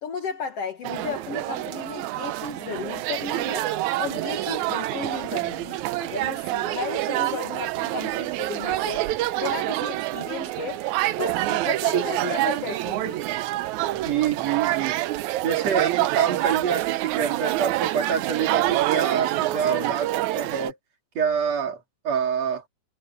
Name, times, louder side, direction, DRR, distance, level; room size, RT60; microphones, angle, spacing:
voice 1, 0.0-3.7 4.0-9.1 9.4-10.9 11.2-13.3, left 6 dB, 60° left, 2.3 m, -34 dB
sound 1, 0.8-20.7, right 16 dB, 80° right, 2.0 m, -26 dB
voice 2, 14.0-14.9 15.4-20.8 21.1-21.8 22.0-22.6, right 7 dB, 60° right, 4.7 m, -26 dB
omnidirectional pair, 3.4 m